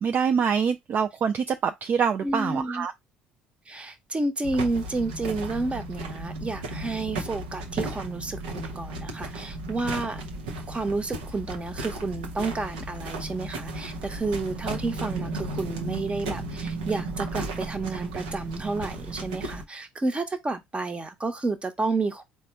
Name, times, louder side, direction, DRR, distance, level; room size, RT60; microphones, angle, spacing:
voice 1, 0.0-2.9, right 6 dB, 45° right, 0.4 m, -25 dB
voice 2, 2.2-2.9 3.7-10.2 10.7-22.2, right 3 dB, 25° right, 1.0 m, -30 dB
sound 1, 4.4-19.6, right 2 dB, 80° right, 0.9 m, -35 dB
4.1 x 2.4 x 4.2 m
hypercardioid pair, 60°, 5 cm